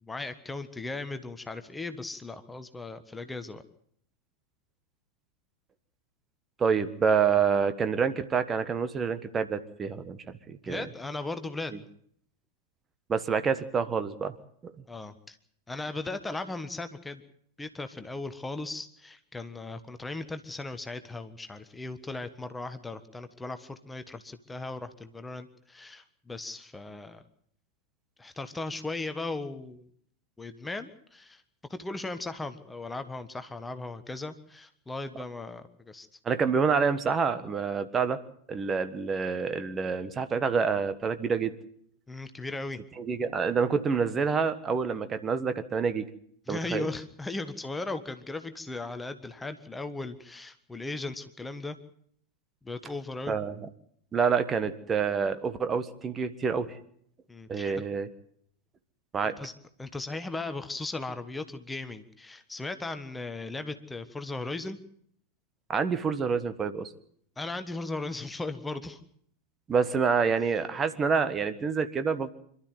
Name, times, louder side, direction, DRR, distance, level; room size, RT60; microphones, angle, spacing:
voice 1, 0.0-3.6 10.6-11.7 14.9-15.4 15.7-17.2 17.6-27.2 28.2-29.9 30.4-31.4 31.7-36.1 42.1-42.8 46.5-51.8 52.6-53.4 57.3-57.7 59.2-59.5 59.8-64.8 67.4-69.0, left 2 dB, 10° left, 10 dB, 1.4 m, -37 dB
voice 2, 6.6-10.8 13.1-14.3 14.6-14.7 36.2-38.2 38.5-41.5 43.0-46.0 46.5-46.9 53.3-53.5 54.1-56.8 57.5-58.1 59.1-59.4 65.7-66.9 69.7-72.3, right 6 dB, 20° right, 10 dB, 1.5 m, -27 dB
26.5 x 13.0 x 9.3 m, 0.65 s
figure-of-eight pair, 90°, 0 cm